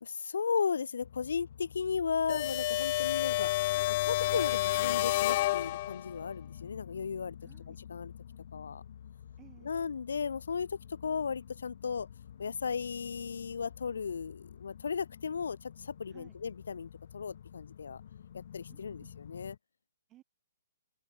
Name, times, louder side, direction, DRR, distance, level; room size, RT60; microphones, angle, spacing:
voice 1, 0.0-3.5 3.9-7.4 7.7-8.1 8.5-8.8 9.6-12.1 12.4-18.0 18.3-19.6, left 6 dB, 80° left, 1.1 m, -35 dB
sound 1, 1.0-19.6, left 9 dB, 50° left, 2.8 m, -50 dB
sound 2, 2.3-6.2, left 16 dB, 30° left, 0.3 m, -29 dB
voice 2, 7.4-7.8 9.4-9.9 16.1-16.4 18.7-19.1 20.1-20.2, right 15 dB, 15° right, 7.3 m, -58 dB
open air
hypercardioid pair, 170°, 0 cm